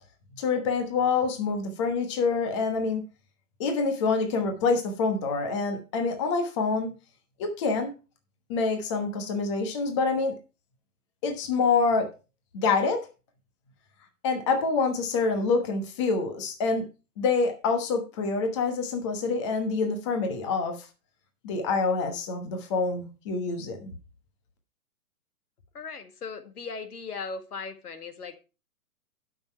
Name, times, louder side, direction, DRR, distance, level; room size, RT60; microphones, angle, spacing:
voice 1, 0.3-3.0 3.6-6.9 7.4-7.9 8.5-10.3 11.2-12.1 12.5-13.1 14.2-16.9 17.2-20.9 21.4-23.9, left 4 dB, 20° left, 1.1 m, -26 dB
voice 2, 25.7-28.5, left 4 dB, 80° left, 1.8 m, -38 dB
12.0 x 6.1 x 4.5 m
hypercardioid pair, 165°, 45 cm